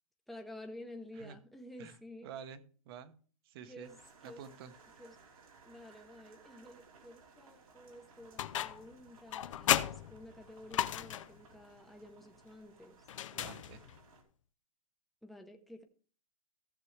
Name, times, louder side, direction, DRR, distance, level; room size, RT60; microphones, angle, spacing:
voice 1, 0.3-2.3 3.6-4.0 4.2-4.7 5.0-5.2 5.6-13.0 15.2-15.8, left 1 dB, ahead, 3 dB, 0.8 m, -51 dB
voice 2, 2.2-3.1 3.4-3.9 4.2-4.7 13.3-13.8, right 8 dB, 45° right, 13 dB, 0.9 m, -49 dB
sound 1, 3.8-14.2, right 5 dB, 90° right, 2.8 m, -61 dB
sound 2, 8.4-8.9 9.3-11.4 13.1-14.0, left 11 dB, 65° left, 0.6 m, -34 dB
15.0 x 6.8 x 3.3 m, 0.43 s
hypercardioid pair, 150°, 18 cm